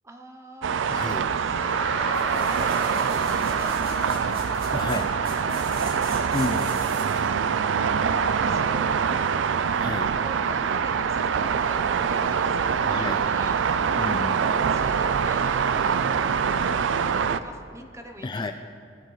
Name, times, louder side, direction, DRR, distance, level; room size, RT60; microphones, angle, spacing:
voice 1, 0.0-1.7 2.3-4.3 8.4-8.9 10.2-13.6 14.6-15.6 16.6-16.7 17.2-18.5, right 1 dB, 15° right, 4 dB, 0.8 m, -43 dB
sound 1, 0.6-17.4, right 6 dB, 70° right, 0.4 m, -24 dB
voice 2, 0.9-1.3 4.7-5.1 6.3-6.9 9.7-10.1 12.8-13.2 14.0-14.5 18.2-18.5, left 2 dB, 25° left, 6 dB, 0.3 m, -31 dB
sound 2, 1.4-6.8, left 2 dB, 50° left, 3.1 m, -38 dB
sound 3, 2.1-7.3 7.8-7.9, right 2 dB, 50° right, 2.5 m, -42 dB
19.0 x 7.9 x 3.2 m, 2.4 s
head